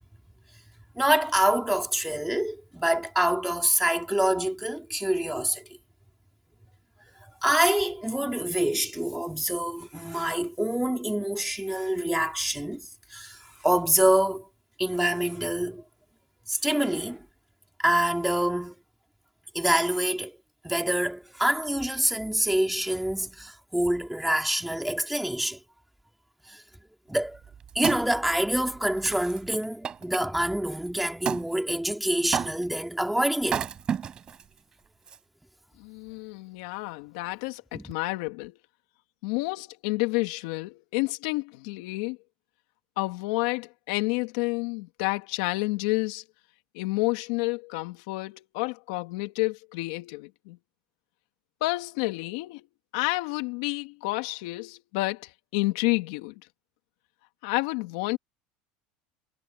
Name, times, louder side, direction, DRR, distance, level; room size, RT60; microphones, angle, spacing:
voice 1, 0.9-5.7 7.4-14.5 14.8-15.8 16.5-17.3 17.8-18.8 19.5-20.4 20.6-25.6 26.5-26.6 27.1-27.4 27.7-33.7 37.7-37.9, right 1 dB, ahead, 2.4 m, -26 dB
Wood, 27.2-30.2 31.3-31.5 32.3-32.8 33.4-34.4 35.1-35.2, right 8 dB, 25° right, 4.6 m, -32 dB
voice 2, 35.8-38.6 39.2-42.2 43.0-46.2 46.7-50.6 51.6-52.6 52.9-56.4 57.4-58.2, left 23 dB, 75° left, 2.4 m, -30 dB
cardioid pair, 155°, 3 cm